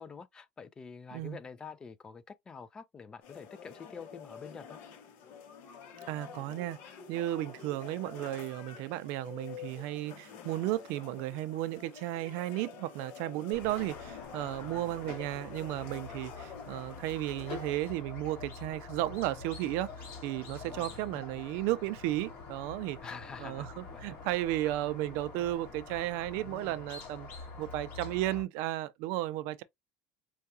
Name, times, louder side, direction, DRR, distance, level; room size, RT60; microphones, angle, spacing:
voice 1, 0.0-4.8 14.6-15.0 20.6-21.0 23.0-24.2 26.4-26.8, left 5 dB, 20° left, 0.3 m, -47 dB
sound 1, 3.2-17.9, left 7 dB, 60° left, 1.0 m, -48 dB
voice 2, 6.1-6.8 7.1-19.9 20.2-23.0 23.4-27.3 27.6-29.6, right 15 dB, 65° right, 0.4 m, -34 dB
Squeak, 13.5-28.4, left 4 dB, 45° left, 1.8 m, -46 dB
4.7 x 2.2 x 2.7 m
cardioid pair, 160°, 4 cm